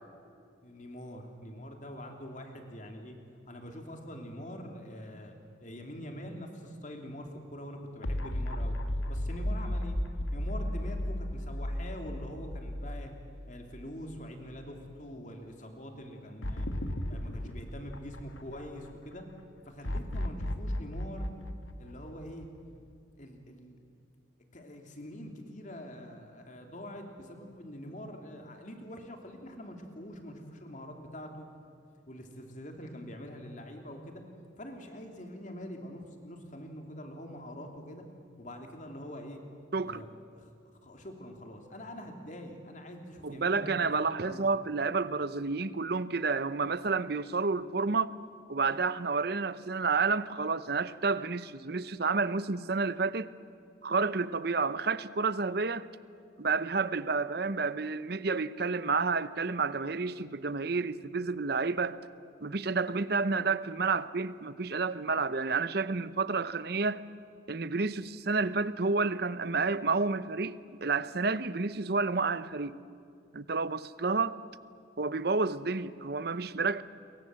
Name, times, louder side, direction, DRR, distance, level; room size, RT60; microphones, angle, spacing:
voice 1, 0.6-3.1 3.5-5.3 5.6-8.8 9.1-10.0 10.3-13.1 13.5-16.7 17.1-19.2 19.7-21.3 21.8-22.5 23.2-23.8 24.5-31.5 32.1-34.2 34.6-38.0 38.4-39.4 39.8-40.5 40.8-44.5, equal, 40° left, 3.0 m, -44 dB
sound 1, 8.0-14.4 14.7-14.8 16.4-18.9 19.8-22.6, left 1 dB, 85° left, 1.9 m, -35 dB
voice 2, 39.7-40.0 43.2-48.1 48.5-53.3 53.8-55.9 56.4-62.0 62.4-67.0 67.5-72.8 73.3-74.4 75.0-76.8, right 4 dB, 50° right, 0.7 m, -30 dB
28.5 x 23.0 x 7.7 m
head